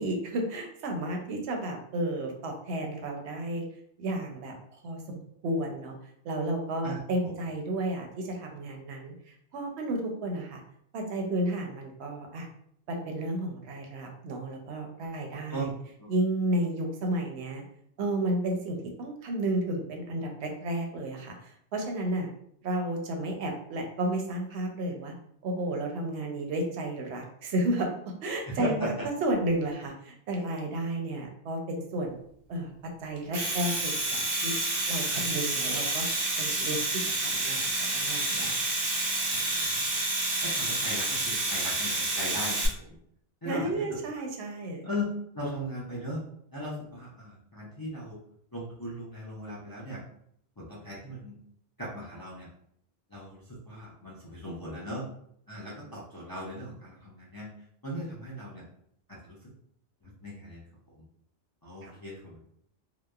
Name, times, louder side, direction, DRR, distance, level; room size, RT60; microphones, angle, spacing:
voice 1, 0.0-3.6 4.0-5.9 6.2-10.6 10.9-12.5 12.9-15.7 16.1-17.6 18.0-22.3 22.6-25.1 25.4-27.9 28.2-28.9 29.2-32.1 32.5-32.7 33.0-34.5 34.9-36.0 36.4-38.8 43.4-44.9, right 1 dB, 85° right, 2 dB, 0.8 m, -32 dB
voice 2, 28.5-29.1 35.1-35.2 39.5-39.8 40.4-43.0 43.4-43.7 44.1-44.2 44.8-45.1 45.3-46.2 46.5-48.2 48.5-50.0 50.6-51.4 51.8-52.5 53.1-55.0 55.5-57.5 57.8-58.6 59.1-59.4 60.0-61.0 61.6-62.5, equal, 30° left, -8 dB, 0.4 m, -38 dB
Domestic sounds home sounds, 33.2-42.7, right 2 dB, 50° right, 0.5 m, -29 dB
2.8 x 2.0 x 2.3 m, 0.69 s
omnidirectional pair, 1.1 m